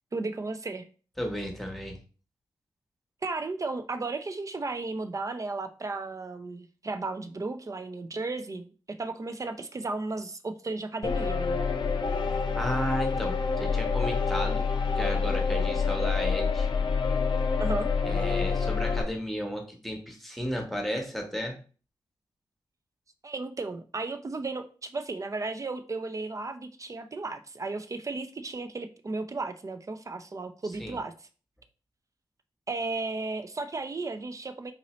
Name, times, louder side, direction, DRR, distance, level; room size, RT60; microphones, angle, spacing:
voice 1, 0.1-0.9 3.2-11.6 17.6-17.9 23.2-31.1 32.7-34.7, right 3 dB, 40° right, 8 dB, 0.5 m, -34 dB
voice 2, 1.2-2.0 12.6-14.7 14.9-16.7 18.0-21.6 30.8-31.0, equal, ahead, 2 dB, 1.1 m, -33 dB
sound 1, 11.0-19.0, left 5 dB, 65° left, 0.6 m, -27 dB
4.1 x 2.6 x 3.0 m, 0.38 s
cardioid pair, 50°, 9 cm